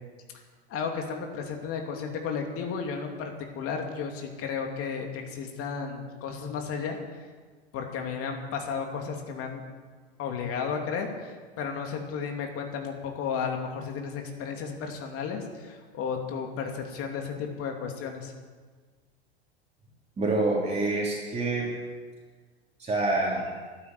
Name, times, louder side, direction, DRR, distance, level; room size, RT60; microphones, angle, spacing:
voice 1, 0.7-7.2 7.7-9.6 10.2-18.3, left 6 dB, 45° left, 3 dB, 2.8 m, -33 dB
voice 2, 20.2-21.7 22.8-23.5, right 2 dB, 20° right, -3 dB, 3.3 m, -26 dB
12.0 x 9.4 x 9.8 m, 1.5 s
hypercardioid pair, 95°, 32 cm